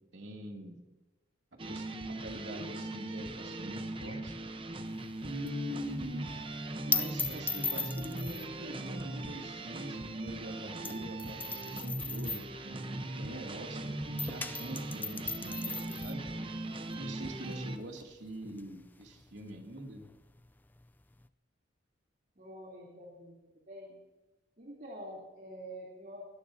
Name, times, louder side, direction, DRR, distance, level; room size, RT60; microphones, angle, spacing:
voice 1, 0.1-0.8 1.7-4.3 5.2-6.3 6.8-16.3 17.0-20.1, equal, 70° right, 1 dB, 2.5 m, -43 dB
sound 1, 1.6-17.8, right 2 dB, 30° right, 0.8 m, -40 dB
sound 2, 4.9-13.8 14.0-21.3, left 4 dB, 10° left, 0.3 m, -39 dB
voice 2, 22.3-24.0 24.6-26.3, equal, 45° right, -4 dB, 3.1 m, -47 dB
23.0 x 13.5 x 2.7 m, 1.1 s
head